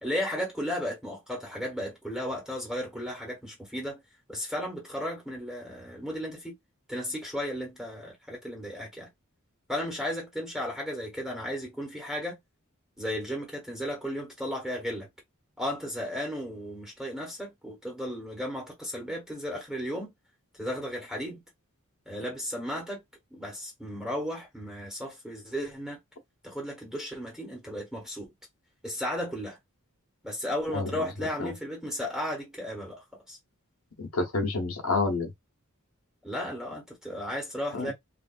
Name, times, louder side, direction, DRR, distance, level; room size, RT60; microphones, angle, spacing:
voice 1, 0.0-4.0 4.3-6.5 6.9-9.1 9.7-12.4 13.0-15.1 15.6-20.1 20.6-21.4 22.1-23.0 23.3-26.0 26.4-28.3 28.8-29.6 30.2-33.4 36.2-37.9, equal, 5° right, 1.2 m, -34 dB
voice 2, 30.7-31.1 31.4-31.5 34.0-35.3 37.7-37.9, left 3 dB, 80° left, 1.0 m, -29 dB
3.1 x 2.6 x 2.4 m
head